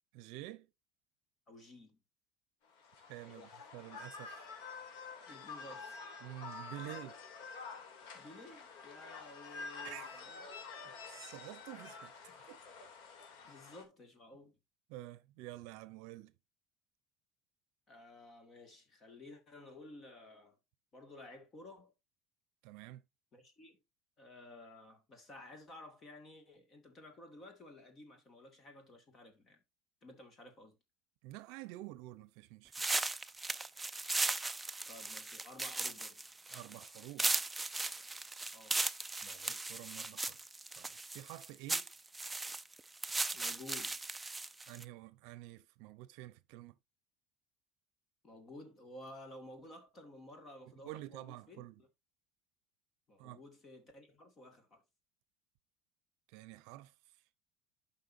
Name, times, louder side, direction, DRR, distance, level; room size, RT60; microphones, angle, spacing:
voice 1, 0.1-0.7 3.0-4.5 6.2-7.2 9.8-10.1 11.1-12.1 12.5-12.6 13.4-13.5 14.9-16.3 22.6-23.0 31.2-32.9 36.5-37.3 39.2-40.4 40.7-41.9 44.7-46.7 50.6-51.8 53.2-53.4 56.3-56.9, right 16 dB, 70° right, 0.7 m, -49 dB
voice 2, 1.5-2.0 3.2-3.6 5.3-6.0 6.8-6.9 8.1-10.4 10.8-11.0 12.3-12.5 13.5-14.6 17.9-20.6 20.9-21.9 23.3-23.8 24.2-29.6 30.0-30.8 34.9-36.3 38.5-38.8 43.3-44.0 48.2-51.9 53.1-54.8, left 1 dB, 25° left, 2.1 m, -54 dB
sound 1, 2.7-13.8, left 4 dB, 75° left, 2.8 m, -49 dB
sound 2, 32.7-44.8, right 2 dB, 5° right, 0.4 m, -37 dB
11.5 x 5.5 x 2.7 m
cardioid pair, 170°, 0 cm